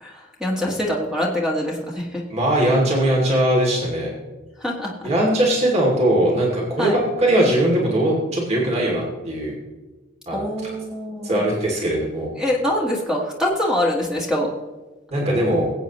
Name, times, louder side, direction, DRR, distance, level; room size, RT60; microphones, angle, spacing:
voice 1, 0.0-2.2 4.6-4.9 6.8-7.0 10.3-11.4 12.3-14.5, left 1 dB, 5° right, -2 dB, 1.5 m, -24 dB
voice 2, 2.3-4.1 5.0-9.5 10.3-10.7 11.2-12.3 15.1-15.7, right 1 dB, 35° right, -2 dB, 2.7 m, -20 dB
21.5 x 8.4 x 3.1 m, 1.2 s
head